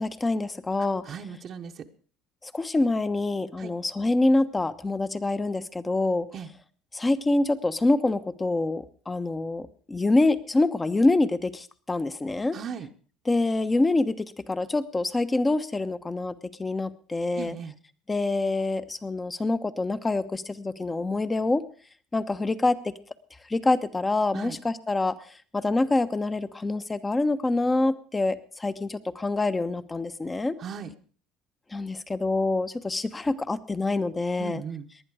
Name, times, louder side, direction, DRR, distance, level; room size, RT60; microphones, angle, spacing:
voice 1, 0.0-1.0 2.4-6.3 6.9-12.6 13.3-17.5 18.1-21.6 22.1-23.0 23.5-25.1 25.5-30.5 31.7-34.6, left 2 dB, 20° left, 12 dB, 1.1 m, -26 dB
voice 2, 1.0-1.8 3.6-3.7 6.3-6.5 12.5-12.9 17.4-17.7 24.3-24.6 30.6-30.9 34.4-34.9, right 7 dB, 50° right, 3 dB, 1.1 m, -37 dB
19.0 x 11.0 x 4.9 m, 0.43 s
supercardioid pair, 85°, 0 cm